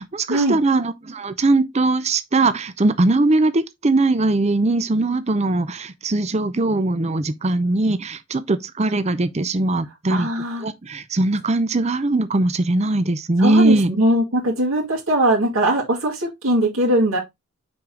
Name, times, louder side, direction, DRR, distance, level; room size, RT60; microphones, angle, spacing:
voice 1, 0.0-10.3 10.6-13.9, right 2 dB, 30° right, 0.6 m, -20 dB
voice 2, 10.1-10.6 13.4-17.2, right 1 dB, 75° right, 2.2 m, -20 dB
6.0 x 4.8 x 3.8 m
head